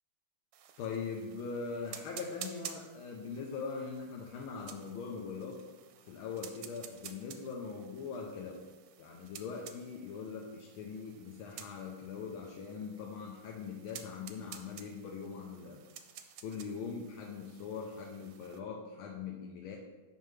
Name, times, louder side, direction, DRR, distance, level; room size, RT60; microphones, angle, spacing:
sound 1, 0.5-18.6, right 9 dB, 85° right, 1.4 m, -52 dB
voice 1, 0.8-5.6 6.0-8.7 9.0-15.8 16.4-19.8, left 5 dB, 90° left, 0 dB, 1.5 m, -41 dB
7.7 x 5.4 x 3.2 m, 1.2 s
omnidirectional pair, 2.2 m